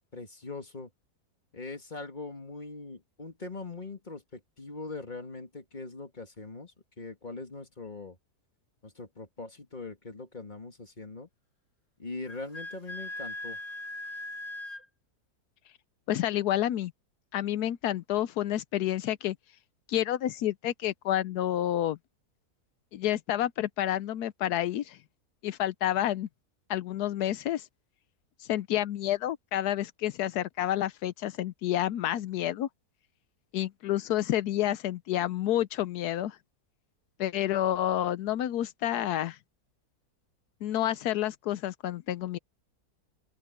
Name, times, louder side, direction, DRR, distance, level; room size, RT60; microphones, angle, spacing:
voice 1, 0.1-0.9 1.5-8.2 8.8-11.3 12.0-13.6, left 3 dB, 30° left, 2.6 m, -41 dB
Wind instrument woodwind instrument, 12.3-14.8, left 2 dB, 70° left, 7.1 m, -39 dB
voice 2, 16.1-16.9 17.3-19.4 19.9-22.0 22.9-25.0 25.4-26.3 26.7-27.7 28.4-32.7 33.5-36.4 37.2-39.4 40.6-42.4, left 12 dB, 85° left, 1.2 m, -29 dB
open air
omnidirectional pair, 1.6 m